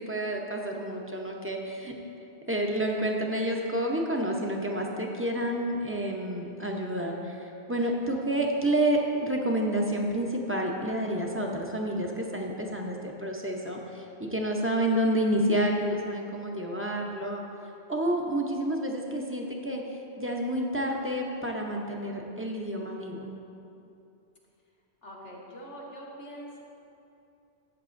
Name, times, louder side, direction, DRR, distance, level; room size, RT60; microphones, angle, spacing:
voice 1, 0.0-1.9 2.5-17.4 17.9-19.8 20.2-23.3, right 1 dB, 15° right, 0 dB, 0.6 m, -29 dB
voice 2, 25.0-26.6, equal, 90° left, -3 dB, 1.7 m, -43 dB
13.5 x 8.0 x 2.6 m, 2.8 s
omnidirectional pair, 1.2 m